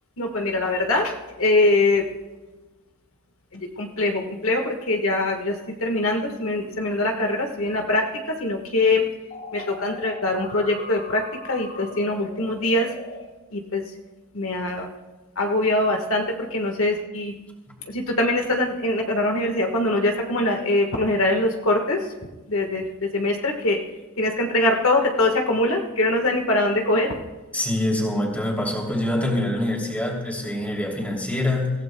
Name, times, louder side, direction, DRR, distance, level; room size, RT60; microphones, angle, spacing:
voice 1, 0.2-2.0 3.5-5.5 5.8-8.0 8.4-9.0 9.5-11.2 11.5-12.9 13.5-13.8 14.3-14.9 15.4-16.2 16.5-17.3 17.9-22.0 22.5-23.8 24.2-27.2, left 2 dB, 65° left, 2 dB, 1.5 m, -23 dB
sound 1, 9.3-13.2, left 3 dB, 40° left, 4.5 m, -39 dB
voice 2, 27.5-31.7, left 1 dB, 5° left, -2 dB, 2.9 m, -25 dB
25.5 x 15.5 x 2.2 m, 1.2 s
head